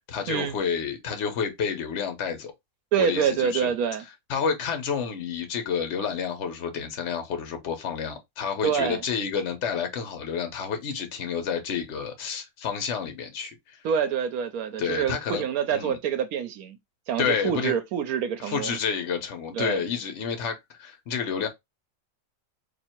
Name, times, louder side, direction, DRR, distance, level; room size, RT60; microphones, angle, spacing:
voice 1, 0.1-2.5 3.0-3.7 4.3-13.8 14.8-15.4 15.7-16.0 17.2-17.7 18.4-21.5, left 6 dB, 55° left, 1.2 m, -29 dB
voice 2, 2.9-4.0 8.6-9.0 13.8-16.8 17.1-18.8 19.5-19.8, right 8 dB, 80° right, 1.1 m, -26 dB
2.9 x 2.7 x 4.3 m
omnidirectional pair, 1.5 m